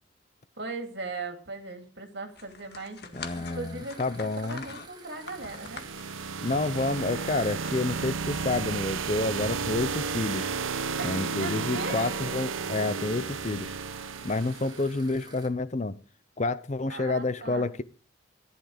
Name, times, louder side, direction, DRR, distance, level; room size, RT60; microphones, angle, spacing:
voice 1, 0.6-5.8 11.0-12.0 16.9-17.7, right 3 dB, 55° right, 3.1 m, -38 dB
sound 1, 2.3-8.5, left 4 dB, 55° left, 1.8 m, -45 dB
voice 2, 3.1-4.6 6.4-10.5 11.0-13.8 14.2-16.0 16.4-17.8, left 2 dB, 35° left, 0.6 m, -29 dB
sound 2, 3.2-15.5, right 4 dB, 20° right, 2.2 m, -51 dB
sound 3, 5.2-15.0, right 5 dB, 85° right, 0.9 m, -33 dB
15.0 x 11.5 x 5.1 m
head